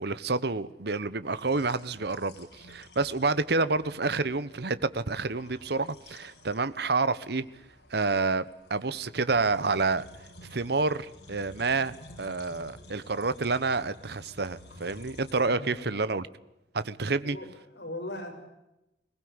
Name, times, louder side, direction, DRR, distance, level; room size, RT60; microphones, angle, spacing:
voice 1, 0.0-7.4 7.9-10.1 10.5-16.3 16.7-17.4, right 3 dB, 65° right, 15 dB, 1.1 m, -29 dB
sound 1, 1.2-15.4, left 1 dB, 90° left, 5.7 m, -52 dB
voice 2, 15.4-15.9 17.2-18.3, left 1 dB, 70° left, 3 dB, 6.7 m, -39 dB
21.5 x 19.5 x 9.7 m, 0.91 s
head